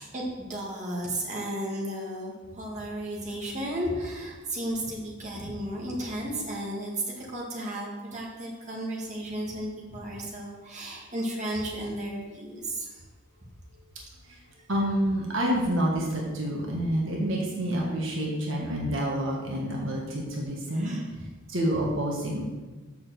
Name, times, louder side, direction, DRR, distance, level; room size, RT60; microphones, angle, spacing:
voice 1, 0.0-13.0 20.7-21.0, right 1 dB, 35° right, -3 dB, 1.8 m, -34 dB
voice 2, 14.7-20.9 21.5-22.4, equal, 65° right, -2 dB, 1.5 m, -28 dB
6.6 x 5.6 x 6.7 m, 1.3 s
head